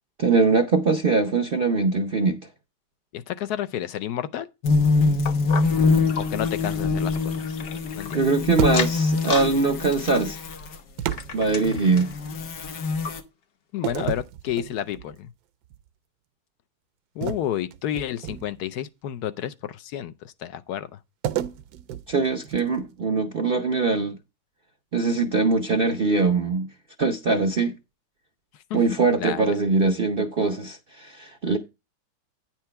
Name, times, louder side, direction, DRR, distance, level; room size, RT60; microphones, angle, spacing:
voice 1, 0.2-2.4 8.1-10.4 11.3-12.1 22.1-24.2 24.9-26.7 27.0-27.7 28.7-31.6, right 4 dB, 55° right, 0.6 m, -22 dB
voice 2, 3.1-4.5 6.2-7.6 7.9-8.2 13.7-15.3 17.2-20.9 28.7-28.8 29.2-29.4, left 11 dB, 75° left, 1.1 m, -30 dB
sound 1, 4.6-10.8 11.4-13.2, left 4 dB, 90° left, 1.7 m, -24 dB
sound 2, 5.2-8.2 8.6-9.5 9.8-12.2 12.7-12.8 13.0-13.1 13.8-13.9, left 6 dB, 55° left, 0.6 m, -35 dB
sound 3, 8.6-9.2 11.0-12.3 13.8-15.2 15.6-15.9 17.2-18.7 21.2-22.9, right 11 dB, 70° right, 1.1 m, -31 dB
9.5 x 4.5 x 5.6 m
omnidirectional pair, 1.8 m